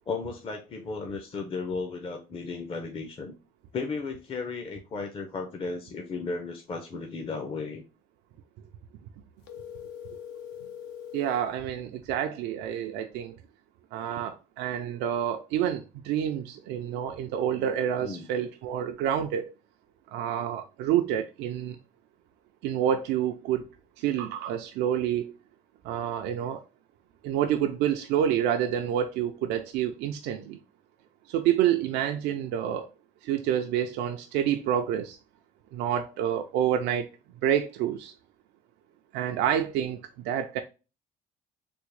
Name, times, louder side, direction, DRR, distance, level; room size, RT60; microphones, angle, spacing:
voice 1, 0.1-3.3 3.7-7.8 18.0-18.3, left 4 dB, 35° left, 0.6 m, -35 dB
sound 1, 9.4-11.5, left 9 dB, 85° left, 0.6 m, -42 dB
voice 2, 11.1-13.4 13.9-19.5 20.1-21.8 22.6-23.6 24.0-25.3 25.8-26.6 27.2-30.6 31.3-32.9 33.2-35.2 35.7-37.1 37.4-38.1 39.1-40.6, right 10 dB, 90° right, 0.4 m, -28 dB
3.5 x 2.1 x 3.1 m
cardioid pair, 110°, 17 cm